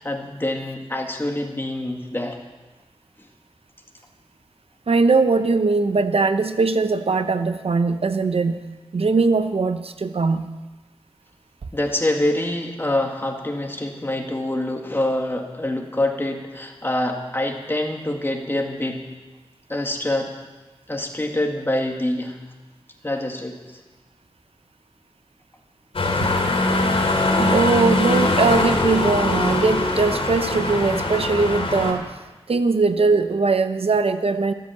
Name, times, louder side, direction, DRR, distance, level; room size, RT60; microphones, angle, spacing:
voice 1, 0.0-2.4 11.7-19.0 19.7-20.3 20.9-22.4 23.0-23.6, left 1 dB, 20° left, 2 dB, 2.0 m, -25 dB
voice 2, 4.9-10.5 26.2-26.3 27.4-32.2 32.5-34.5, right 4 dB, 75° right, 9 dB, 0.8 m, -20 dB
sound 1, 25.9-31.9, left 2 dB, 70° left, 2.8 m, -21 dB
13.5 x 13.0 x 7.0 m, 1.2 s
wide cardioid pair, 85°, 10 cm